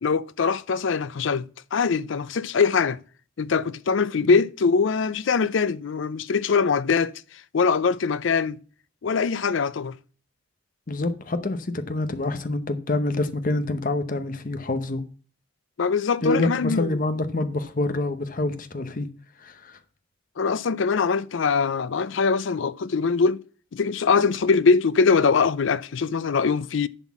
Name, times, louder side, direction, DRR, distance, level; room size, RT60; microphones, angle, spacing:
voice 1, 0.0-3.0 3.4-7.1 7.5-8.6 9.0-10.0 15.8-17.0 20.4-23.4 23.7-26.9, left 5 dB, 70° left, 0.5 m, -22 dB
voice 2, 10.9-15.0 16.2-19.1 19.4-19.8, left 2 dB, 45° left, 0.8 m, -26 dB
10.5 x 4.1 x 7.2 m
head